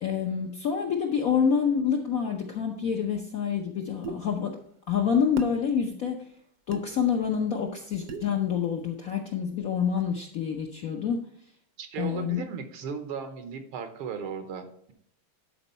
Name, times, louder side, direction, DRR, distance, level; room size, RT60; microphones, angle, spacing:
voice 1, 0.0-4.5 4.9-6.2 6.7-11.2 12.0-12.4, left 7 dB, 65° left, 2 dB, 0.8 m, -27 dB
sound 1, 4.0-4.2 5.4-5.6 6.7-6.9 8.1-8.3, right 5 dB, 60° right, 1.0 m, -36 dB
voice 2, 11.8-14.9, right 6 dB, 80° right, 8 dB, 1.8 m, -36 dB
11.0 x 4.5 x 4.2 m, 0.69 s
omnidirectional pair, 2.4 m